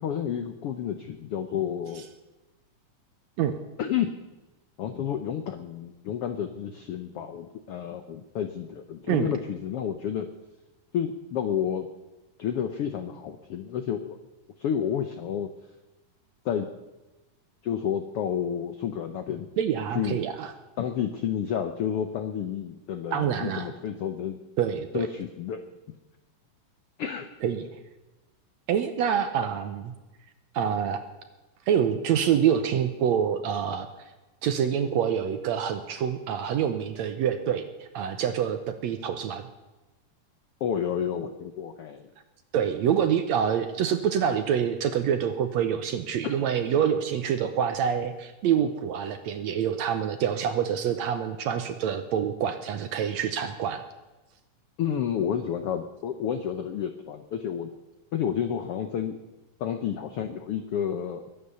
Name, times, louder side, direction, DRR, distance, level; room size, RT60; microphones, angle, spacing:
voice 1, 0.0-2.1 3.8-4.1 4.8-10.3 10.9-11.9 12.4-14.2 14.6-15.5 16.4-16.7 17.6-19.5 19.9-20.2 20.8-24.4 24.9-25.6 27.0-27.3 29.4-29.5 40.6-42.1 46.2-46.4 54.8-57.7 58.1-59.2 59.6-61.2, left 8 dB, 85° left, 8 dB, 1.2 m, -30 dB
voice 2, 19.6-20.5 23.1-23.7 24.6-25.1 27.4-27.6 28.7-29.9 30.5-31.0 31.7-33.9 34.4-39.5 42.5-53.8, right 8 dB, 75° right, 9 dB, 1.8 m, -26 dB
21.5 x 9.2 x 6.9 m, 1.1 s
omnidirectional pair, 3.9 m